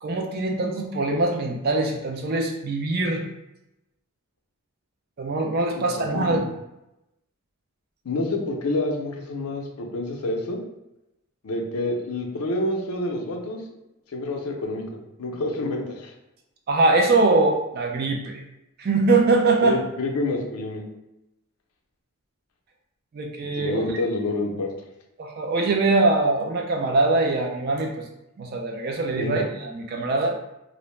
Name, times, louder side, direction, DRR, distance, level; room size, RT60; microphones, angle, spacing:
voice 1, 0.0-3.2 5.2-6.5 16.7-18.4 18.8-19.8 23.1-23.8 25.2-28.0 28.4-30.3, right 3 dB, 45° right, 2 dB, 0.3 m, -22 dB
voice 2, 5.7-6.4 8.0-10.6 11.4-13.6 14.1-14.8 15.2-16.1 19.6-20.8 23.5-24.7 29.2-29.4, left 2 dB, 80° left, 2 dB, 0.5 m, -28 dB
2.5 x 2.0 x 3.1 m, 0.89 s
head